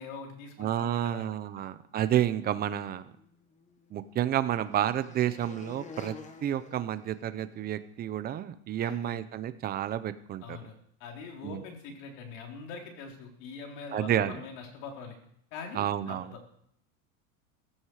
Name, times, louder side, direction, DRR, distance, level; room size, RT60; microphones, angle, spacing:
voice 1, 0.0-1.2 8.8-9.2 10.4-10.7 11.0-15.2 15.5-16.4, left 5 dB, 60° left, 1 dB, 4.3 m, -43 dB
voice 2, 0.6-3.1 3.9-6.2 6.4-10.6 11.4-11.6 13.9-14.4 15.7-16.3, right 11 dB, 20° right, 12 dB, 0.7 m, -30 dB
sound 1, 3.1-7.7, left 5 dB, 15° left, 1.1 m, -50 dB
16.0 x 15.5 x 4.9 m, 0.70 s
supercardioid pair, 155°, 42 cm